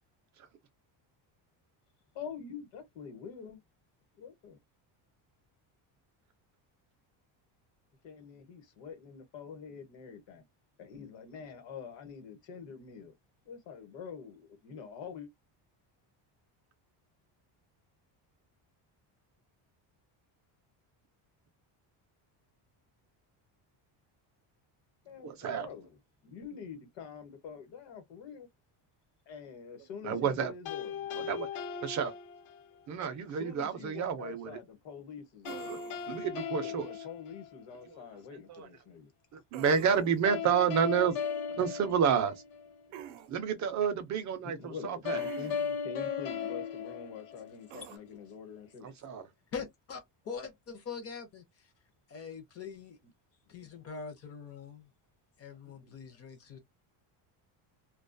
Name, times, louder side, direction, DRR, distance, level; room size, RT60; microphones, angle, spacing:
voice 1, 2.1-3.6 4.2-4.6 8.0-10.4 10.8-13.1 13.4-15.3 25.0-25.9 26.2-28.5 29.3-31.1 33.3-35.7 36.5-39.4 44.4-45.5 45.8-48.9 55.7-55.9, left 6 dB, 60° left, 1.1 m, -46 dB
voice 2, 25.2-25.7 30.0-30.5 31.1-31.5 31.8-32.1 32.9-34.6 35.7-35.8 36.1-36.9 38.5-38.7 39.3-41.2 41.5-42.4 43.3-45.2 48.8-49.3, right 7 dB, 40° right, 0.4 m, -30 dB
sound 1, 30.7-32.8 35.5-37.9 40.3-42.8 45.1-47.9, left 7 dB, 80° left, 0.8 m, -37 dB
sound 2, 35.4-36.2 39.5-40.3 42.9-43.3 45.2-45.8 47.7-48.0, right 11 dB, 90° right, 0.6 m, -47 dB
voice 3, 49.5-51.7 52.1-53.0 53.5-54.9 55.4-56.6, left 5 dB, 30° left, 0.5 m, -43 dB
2.2 x 2.2 x 2.5 m
cardioid pair, 170°, 48 cm